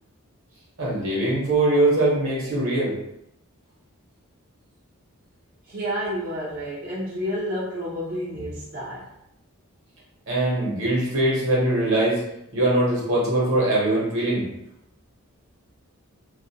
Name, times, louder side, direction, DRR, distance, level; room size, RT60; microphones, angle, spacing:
voice 1, 0.8-2.9 10.3-12.2 12.5-14.5, right 1 dB, 65° right, -5 dB, 1.0 m, -22 dB
voice 2, 5.6-9.1, equal, 45° right, -9 dB, 0.5 m, -30 dB
2.4 x 2.1 x 2.7 m, 0.82 s
head